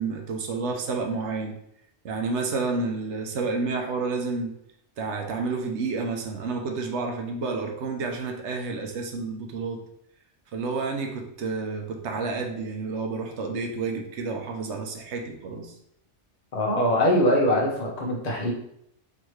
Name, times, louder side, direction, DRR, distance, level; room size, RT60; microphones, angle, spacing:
voice 1, 0.0-1.6 2.0-4.6 5.0-9.8 10.5-15.7, right 4 dB, 70° right, 3 dB, 0.9 m, -30 dB
voice 2, 16.5-18.5, left 1 dB, 35° left, -2 dB, 1.0 m, -22 dB
3.9 x 3.0 x 3.1 m, 0.74 s
omnidirectional pair, 1.2 m